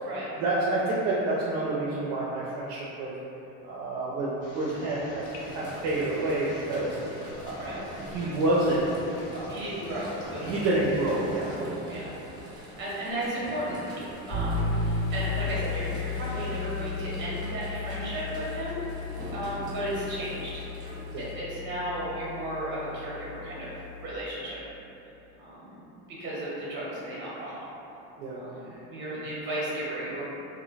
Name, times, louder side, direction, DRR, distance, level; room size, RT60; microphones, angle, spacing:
voice 1, 0.4-3.1 3.6-5.2 5.5-7.0 7.4-8.9 9.3-9.6 10.4-11.7 21.1-21.3 28.2-28.4 28.7-28.8 29.1-29.2, right 2 dB, 60° right, -7 dB, 0.5 m, -28 dB
sound 1, 4.4-11.6, left 2 dB, 65° left, 0.6 m, -45 dB
sound 2, 5.2-21.3, right 1 dB, 10° right, 0.5 m, -44 dB
voice 2, 9.5-10.6 11.9-12.1 12.5-19.1 19.3-20.6 21.2-24.6 25.4-25.8 26.1-27.7 28.3-30.2, right 1 dB, 35° right, -7 dB, 0.9 m, -35 dB
sound 3, 14.3-24.1, left 4 dB, 85° left, 1.4 m, -34 dB
2.5 x 2.1 x 3.8 m, 3.0 s
cardioid pair, 155°, 33 cm